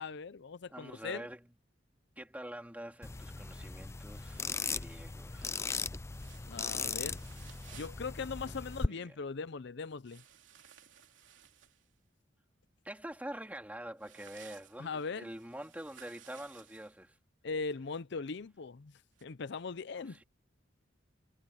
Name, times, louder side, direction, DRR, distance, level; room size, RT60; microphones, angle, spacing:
voice 1, 0.0-1.3 6.5-7.2 7.7-10.2 14.8-15.3 17.4-18.9 19.2-20.2, left 4 dB, 65° left, 0.6 m, -40 dB
voice 2, 0.7-1.5 2.2-5.6 8.4-8.6 8.9-9.2 12.8-17.2 20.0-20.2, right 1 dB, 10° right, 3.0 m, -46 dB
sound 1, 3.0-8.9, left 4 dB, 15° left, 0.3 m, -38 dB
sound 2, 6.1-8.0 10.0-11.9 14.0-17.0 19.1-19.2, right 9 dB, 75° right, 3.2 m, -58 dB
head